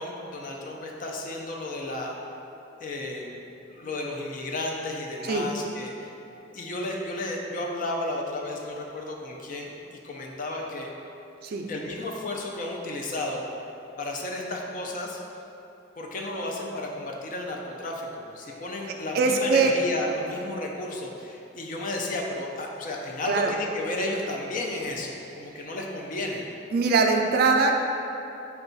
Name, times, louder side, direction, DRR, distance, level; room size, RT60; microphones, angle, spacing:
voice 1, 0.0-2.2 2.8-3.4 3.7-6.1 6.5-9.7 10.0-10.9 11.7-13.5 14.0-15.2 16.0-26.4, left 2 dB, 45° left, 0 dB, 0.4 m, -33 dB
voice 2, 19.1-19.7 23.3-23.5 26.7-27.8, right 4 dB, 55° right, 3 dB, 0.3 m, -22 dB
4.3 x 2.3 x 3.9 m, 2.9 s
head